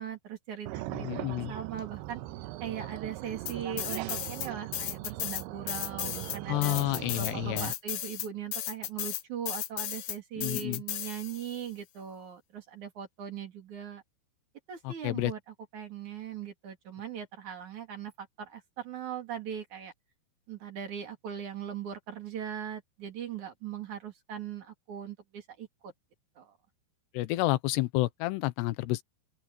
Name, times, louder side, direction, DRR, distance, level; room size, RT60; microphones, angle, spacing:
voice 1, 0.0-2.2 2.6-6.8 7.2-14.0 14.7-19.9 20.5-25.9 26.4-26.6, right 9 dB, 50° right, 3.5 m, -40 dB
sound 1, 0.7-7.7, right 16 dB, 90° right, 2.7 m, -40 dB
voice 2, 1.0-1.5 6.5-7.7 10.4-10.8 14.8-15.3 27.1-29.0, left 18 dB, 90° left, 3.0 m, -30 dB
sound 2, 3.5-4.5 4.7-11.6, left 12 dB, 75° left, 1.8 m, -35 dB
open air
omnidirectional pair, 4.8 m